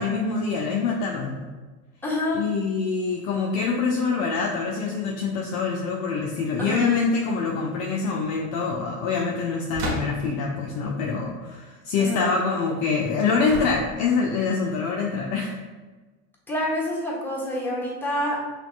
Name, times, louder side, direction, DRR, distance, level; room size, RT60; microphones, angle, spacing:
voice 1, 0.0-1.4 2.3-15.6, left 4 dB, 40° left, 0 dB, 0.5 m, -25 dB
voice 2, 2.0-2.4 6.6-7.0 12.0-12.4 16.5-18.4, left 1 dB, 5° left, -5 dB, 1.3 m, -27 dB
sound 1, 9.7-10.4 13.5-14.2, equal, 65° right, 1.4 m, -32 dB
5.7 x 3.0 x 2.4 m, 1.3 s
figure-of-eight pair, 80°, 46 cm